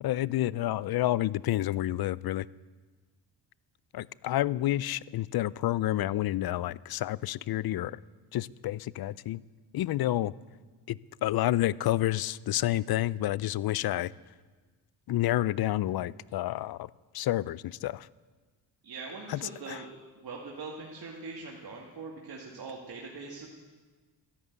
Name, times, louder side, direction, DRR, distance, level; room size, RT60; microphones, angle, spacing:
voice 1, 0.0-2.5 3.9-8.0 8.3-9.4 9.7-10.3 10.9-14.1 15.1-16.9 17.1-18.1 19.3-19.8, left 14 dB, 50° left, 21 dB, 0.5 m, -29 dB
voice 2, 18.8-19.9 20.2-23.5, right 4 dB, 50° right, -2 dB, 2.2 m, -42 dB
13.0 x 11.5 x 8.2 m, 1.4 s
cardioid pair, 75°, 48 cm